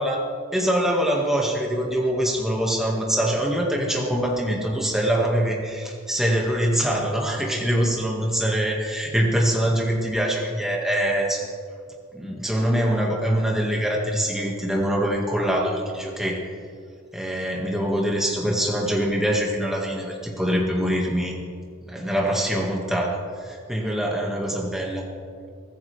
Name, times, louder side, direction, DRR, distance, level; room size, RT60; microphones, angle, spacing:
voice 1, 0.5-11.5 12.1-16.6 17.1-21.4 21.8-25.1, equal, ahead, -2 dB, 1.9 m, -24 dB
23.0 x 14.0 x 3.5 m, 2.2 s
head